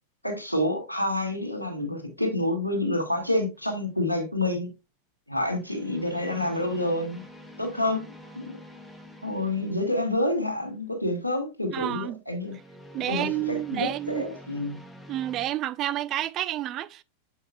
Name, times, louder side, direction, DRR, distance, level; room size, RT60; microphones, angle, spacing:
voice 1, 0.2-4.7 5.3-7.2 7.6-8.1 8.4-8.6 9.2-12.6 12.9-14.8, left 1 dB, 90° left, 1.7 m, -28 dB
sound 1, 3.6-3.9 5.5-10.6 12.4-15.5, equal, 5° left, 1.3 m, -48 dB
voice 2, 11.7-12.2 12.9-14.2 15.1-17.0, right 13 dB, 35° right, 0.4 m, -29 dB
7.3 x 5.5 x 2.3 m
figure-of-eight pair, 90°, 0 cm